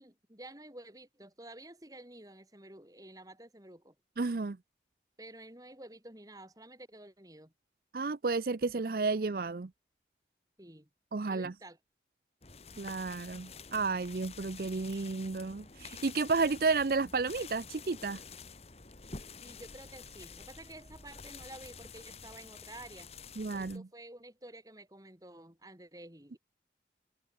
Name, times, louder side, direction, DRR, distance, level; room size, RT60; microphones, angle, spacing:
voice 1, 0.0-3.9 5.2-7.5 10.6-10.9 11.3-11.8 19.4-23.1 23.5-26.4, right 1 dB, 20° right, 3.7 m, -51 dB
voice 2, 4.2-4.6 7.9-9.7 11.1-11.5 12.8-18.2 23.4-23.8, right 4 dB, 55° right, 0.6 m, -32 dB
sound 1, 12.4-23.8, left 5 dB, 35° left, 2.0 m, -49 dB
head